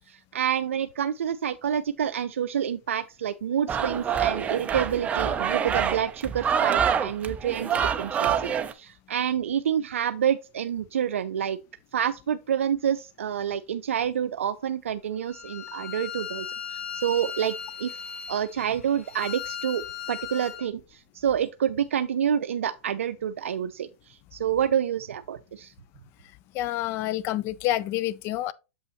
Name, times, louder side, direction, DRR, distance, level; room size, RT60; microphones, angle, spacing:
voice 1, 0.1-11.6 11.9-17.9 18.3-25.7, right 9 dB, 90° right, 0.4 m, -28 dB
sound 1, 3.7-8.7, right 7 dB, 20° right, 0.6 m, -26 dB
Bowed string instrument, 15.3-20.7, left 7 dB, 80° left, 1.5 m, -37 dB
voice 2, 26.5-28.5, left 14 dB, 35° left, 0.5 m, -28 dB
7.0 x 5.4 x 3.0 m
hypercardioid pair, 130°, 7 cm